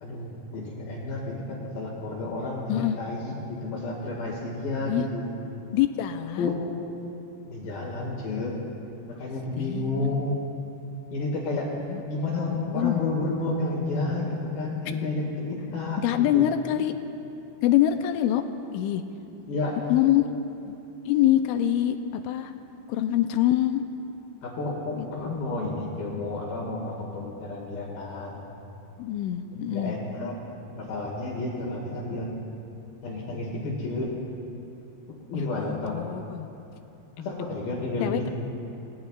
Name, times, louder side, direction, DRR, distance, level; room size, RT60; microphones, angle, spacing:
voice 1, 0.0-5.2 6.4-6.6 7.5-8.5 9.2-10.4 11.1-11.7 12.1-16.4 19.5-19.8 24.4-28.5 29.5-30.3 30.7-32.3 33.0-34.1 35.3-36.0 37.2-38.3, left 2 dB, 55° left, -3 dB, 3.4 m, -31 dB
voice 2, 5.7-6.5 9.6-10.2 11.9-12.0 12.7-13.0 16.0-16.9 17.6-18.4 18.7-19.0 19.9-20.3 20.7-20.8 21.1-22.5 22.9-23.8 29.0-30.0 35.3-36.5 38.0-38.3, left 12 dB, 85° left, 7 dB, 2.9 m, -25 dB
28.5 x 19.0 x 2.4 m, 2.8 s
omnidirectional pair, 5.6 m